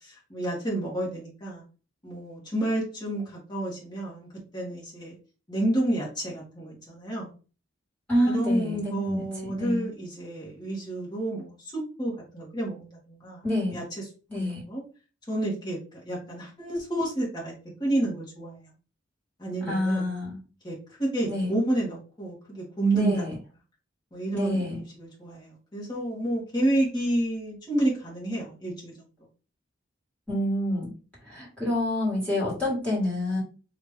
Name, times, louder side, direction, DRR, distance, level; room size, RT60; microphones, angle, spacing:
voice 1, 0.0-1.6 2.0-5.1 5.5-7.3 8.3-13.4 13.7-14.8 15.3-15.8 16.0-17.5 17.8-18.6 19.4-20.1 20.6-23.2 24.1-28.9, right 1 dB, 20° left, -5 dB, 1.3 m, -30 dB
voice 2, 8.1-9.9 13.4-13.8 14.3-14.6 19.7-20.4 21.3-21.5 22.9-23.3 24.3-24.8 30.3-30.9 31.2-33.4, left 1 dB, 5° left, -8 dB, 1.8 m, -27 dB
3.0 x 2.5 x 3.5 m, 0.35 s
head